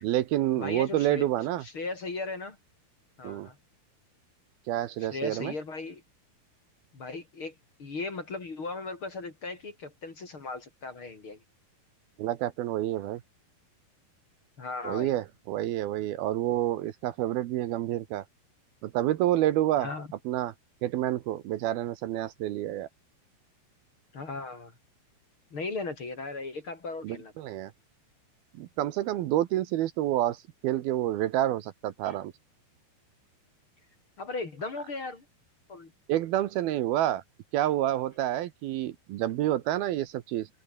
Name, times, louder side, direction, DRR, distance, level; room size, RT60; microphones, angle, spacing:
voice 1, 0.0-1.6 3.2-3.5 4.7-5.5 12.2-13.2 14.8-18.2 18.8-19.9 20.3-20.5 20.8-22.9 27.0-27.7 28.5-32.3 36.1-37.2 37.5-40.5, right 13 dB, 75° right, 2.8 m, -28 dB
voice 2, 0.6-1.3 1.6-2.6 3.2-3.6 5.1-6.0 6.9-11.4 14.6-15.1 19.8-20.1 24.1-24.7 25.5-27.3 32.0-32.2 34.2-35.3 35.7-35.9, left 3 dB, 35° left, 3.5 m, -37 dB
open air
omnidirectional pair, 4.7 m